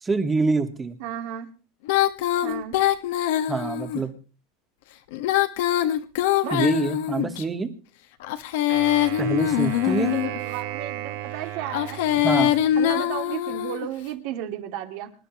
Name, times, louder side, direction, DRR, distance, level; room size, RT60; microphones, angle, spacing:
voice 1, 0.0-1.0 3.5-4.1 6.5-7.7 9.2-10.1 12.2-12.5, right 4 dB, 15° right, 7 dB, 1.7 m, -25 dB
voice 2, 1.0-1.5 2.4-2.8 6.4-6.6 9.8-12.0 12.8-15.1, right 11 dB, 65° right, 5 dB, 2.5 m, -33 dB
Female singing, 1.9-4.0 5.1-7.4 8.2-10.4 11.6-13.9, left 12 dB, 75° left, 1.4 m, -23 dB
Wind instrument woodwind instrument, 8.7-13.0, right 12 dB, 90° right, 5.2 m, -35 dB
26.0 x 11.5 x 3.0 m, 0.37 s
supercardioid pair, 140°, 0 cm